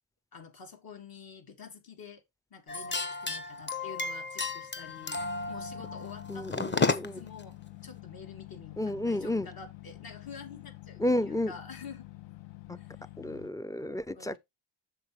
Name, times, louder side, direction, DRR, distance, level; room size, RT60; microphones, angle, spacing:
voice 1, 0.3-2.2 2.5-12.1 12.8-13.1 14.1-14.4, left 5 dB, 55° left, 2.6 m, -48 dB
sound 1, 2.7-7.3, left 3 dB, 25° left, 1.0 m, -33 dB
sound 2, 4.8-13.5, left 19 dB, 75° left, 1.0 m, -47 dB
voice 2, 6.3-7.2 8.8-9.5 11.0-11.5 12.7-12.8 13.2-14.4, left 1 dB, 10° left, 0.4 m, -31 dB
7.5 x 6.7 x 3.5 m
cardioid pair, 95°, 44 cm